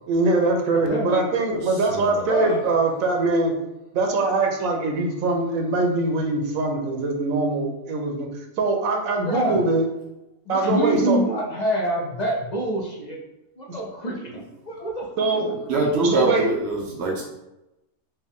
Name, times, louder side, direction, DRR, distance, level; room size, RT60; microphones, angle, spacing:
voice 1, 0.1-3.5 3.9-8.3 8.6-9.8 10.5-11.2 15.2-15.5 16.0-16.5, right 3 dB, 85° right, 3 dB, 1.1 m, -22 dB
voice 2, 0.8-1.2 2.3-2.6 9.2-9.6 10.5-13.2 13.6-15.8, equal, 45° left, -2 dB, 0.6 m, -27 dB
voice 3, 1.5-2.3 15.7-17.2, right 2 dB, 60° right, -2 dB, 0.8 m, -24 dB
4.5 x 2.3 x 3.5 m, 0.93 s
omnidirectional pair, 1.4 m